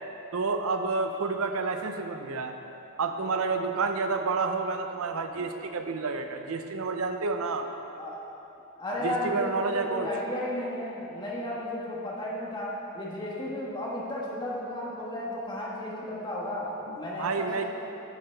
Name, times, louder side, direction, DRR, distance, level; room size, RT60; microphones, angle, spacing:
voice 1, 0.3-2.5 3.0-7.7 9.0-10.1 16.9-17.6, right 4 dB, 85° right, 6 dB, 0.6 m, -29 dB
voice 2, 8.8-17.6, left 1 dB, 20° left, -5 dB, 1.4 m, -34 dB
10.5 x 5.8 x 4.6 m, 2.9 s
head